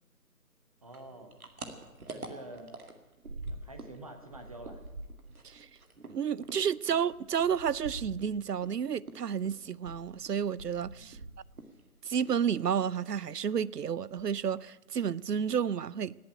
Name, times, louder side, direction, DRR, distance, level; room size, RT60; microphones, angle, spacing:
voice 1, 0.8-1.4 2.1-2.8 3.5-4.8 10.9-11.3, right 2 dB, 25° right, 1.1 m, -48 dB
sound 1, 0.9-8.7 9.0-11.8 12.0-12.7 13.0-13.3 13.6-13.7 14.0-14.6, right 2 dB, 65° right, 2.3 m, -45 dB
voice 2, 6.1-11.2 12.0-16.1, right 8 dB, 85° right, 0.6 m, -31 dB
18.0 x 7.7 x 9.8 m
figure-of-eight pair, 160°, 46 cm